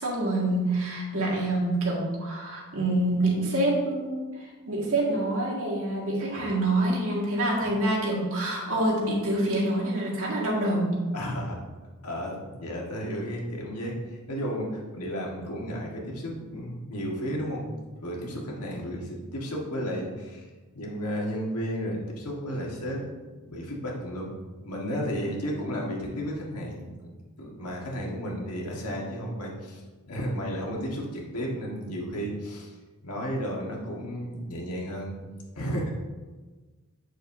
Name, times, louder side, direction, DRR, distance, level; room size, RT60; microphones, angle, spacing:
voice 1, 0.0-11.0, right 1 dB, 65° right, -3 dB, 2.0 m, -26 dB
voice 2, 11.1-11.6 12.0-20.5 20.7-23.1 23.4-24.3 24.6-27.1 27.4-32.8 33.0-35.2 35.5-35.9, equal, 80° left, -2 dB, 1.6 m, -33 dB
8.0 x 6.4 x 2.7 m, 1.3 s
head